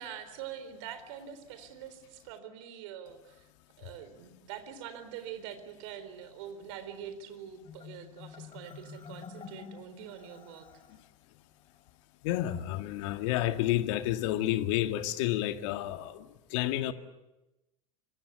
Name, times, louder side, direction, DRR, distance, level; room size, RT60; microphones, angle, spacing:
voice 1, 0.0-3.5 3.8-10.7, right 9 dB, 60° right, 4.1 m, -44 dB
Marimba xylophone, 7.7-11.0, left 6 dB, 30° left, 4.7 m, -48 dB
voice 2, 12.2-16.9, left 14 dB, 60° left, 2.1 m, -30 dB
26.0 x 25.5 x 8.4 m
hypercardioid pair, 85°, 17 cm